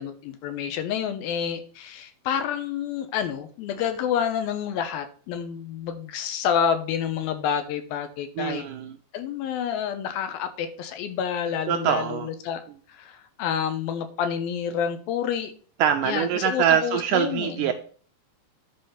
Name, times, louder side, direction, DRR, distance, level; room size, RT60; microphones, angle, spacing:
voice 1, 0.0-8.6 9.1-12.6 12.9-15.5 16.0-17.7, left 8 dB, 80° left, 9 dB, 2.7 m, -28 dB
voice 2, 8.4-9.0 11.7-12.3 15.8-17.7, right 9 dB, 80° right, 6 dB, 1.9 m, -24 dB
10.5 x 4.2 x 5.7 m, 0.44 s
omnidirectional pair, 4.3 m